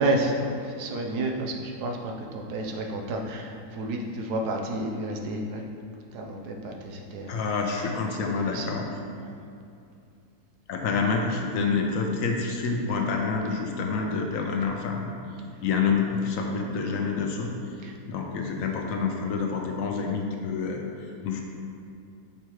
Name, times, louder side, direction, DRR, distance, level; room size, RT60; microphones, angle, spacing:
voice 1, 0.0-5.6 6.1-7.4 8.2-8.8 17.8-17.9, right 1 dB, 80° right, 1 dB, 1.2 m, -30 dB
voice 2, 7.3-8.9 10.7-15.1 15.6-17.5 18.1-20.8 21.2-21.4, left 5 dB, 70° left, 2 dB, 0.9 m, -27 dB
6.6 x 4.8 x 3.0 m, 2.5 s
omnidirectional pair, 1.7 m